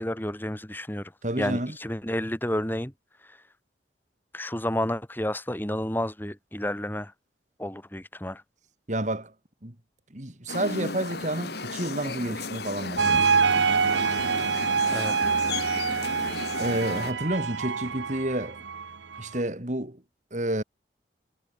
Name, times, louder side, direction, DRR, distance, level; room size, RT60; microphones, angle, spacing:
voice 1, 0.0-1.1 1.4-2.9 3.2-3.4 4.3-7.1 7.6-8.4 14.9-15.4, left 1 dB, 10° left, 1.5 m, -31 dB
voice 2, 1.2-1.8 8.9-9.3 9.6-9.7 10.1-13.4 16.6-18.6 19.2-20.0 20.3-20.6, right 1 dB, 40° right, 2.4 m, -30 dB
sound 1, 10.5-17.1, left 3 dB, 60° left, 3.1 m, -35 dB
sound 2, 13.0-19.4, right 5 dB, 75° right, 0.8 m, -26 dB
head